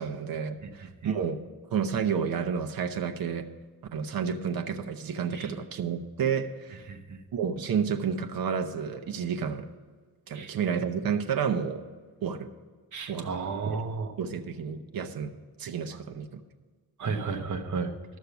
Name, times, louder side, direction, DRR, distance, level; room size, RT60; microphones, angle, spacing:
voice 1, 0.0-1.4 1.7-3.5 3.9-6.9 7.3-9.7 10.3-11.8 12.2-12.5 13.1-13.3 13.7-13.8 14.2-15.3 15.6-16.4, right 7 dB, 70° right, 6 dB, 0.9 m, -30 dB
voice 2, 6.9-7.2 10.3-10.5 12.9-14.1 17.0-17.9, right 4 dB, 55° right, 4 dB, 1.2 m, -33 dB
13.0 x 6.6 x 6.9 m, 1.4 s
wide cardioid pair, 130°, 37 cm